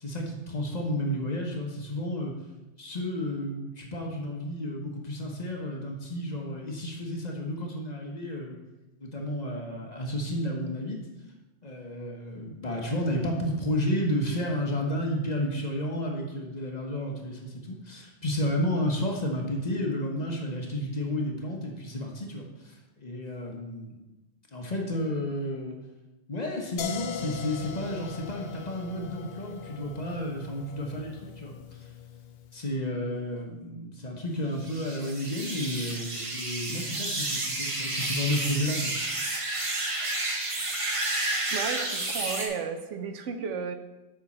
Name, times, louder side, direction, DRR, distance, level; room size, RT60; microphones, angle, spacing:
voice 1, 0.0-2.3 2.8-8.6 9.0-11.0 11.6-24.0 24.5-25.8 26.3-31.9 32.5-38.9, left 1 dB, 40° left, 1 dB, 1.0 m, -32 dB
sound 1, 26.8-32.6, left 8 dB, 65° left, 0.7 m, -41 dB
sound 2, 34.6-42.5, right 2 dB, 30° right, 0.9 m, -31 dB
voice 2, 41.5-43.8, right 6 dB, 85° right, 7 dB, 1.1 m, -33 dB
7.2 x 5.6 x 4.2 m, 1.1 s
omnidirectional pair, 1.2 m